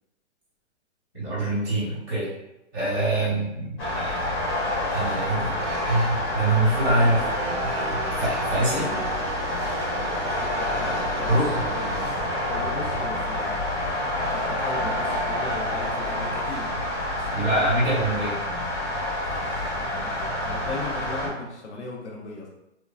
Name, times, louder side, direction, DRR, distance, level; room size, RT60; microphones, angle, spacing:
voice 1, 1.1-2.3 2.7-4.3 4.9-5.5 5.8-7.3 7.6-8.9 11.3-11.5 17.3-18.4, right 1 dB, 5° left, -21 dB, 0.3 m, -25 dB
sound 1, 3.8-21.3, left 1 dB, 55° left, 1.2 m, -28 dB
sound 2, 5.6-12.1, right 4 dB, 80° right, 0.6 m, -37 dB
voice 2, 10.2-13.6 14.2-16.7 17.2-17.6 19.3-22.5, left 3 dB, 70° left, -2 dB, 0.9 m, -37 dB
2.9 x 2.4 x 2.3 m, 0.89 s
hypercardioid pair, 145°, 36 cm